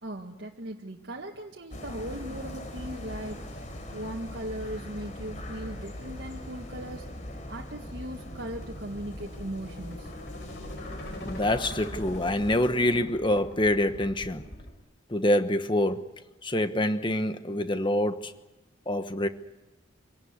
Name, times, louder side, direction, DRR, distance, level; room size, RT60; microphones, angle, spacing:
voice 1, 0.0-7.1 7.5-10.1, right 1 dB, 60° right, 1.8 m, -38 dB
sound 1, 1.7-12.7, left 1 dB, 40° left, 3.6 m, -41 dB
sound 2, 6.7-14.7, left 1 dB, 60° left, 4.4 m, -44 dB
voice 2, 11.2-14.4 15.1-16.1 16.4-18.3 18.9-19.3, left 1 dB, 25° left, 1.2 m, -26 dB
26.0 x 18.5 x 9.6 m
head